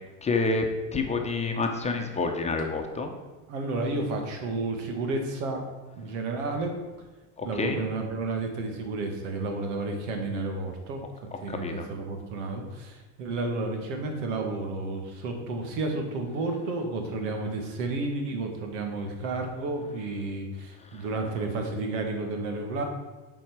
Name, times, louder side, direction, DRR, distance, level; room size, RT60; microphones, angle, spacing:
voice 1, 0.2-0.7 0.9-3.1 7.4-7.8 11.5-11.9 20.9-21.0, left 3 dB, 20° left, 3 dB, 0.9 m, -28 dB
voice 2, 3.5-5.6 6.0-6.7 7.4-11.0 11.4-22.8, right 3 dB, 85° right, 3 dB, 1.9 m, -31 dB
7.7 x 4.6 x 6.1 m, 1.2 s
supercardioid pair, 130°, 36 cm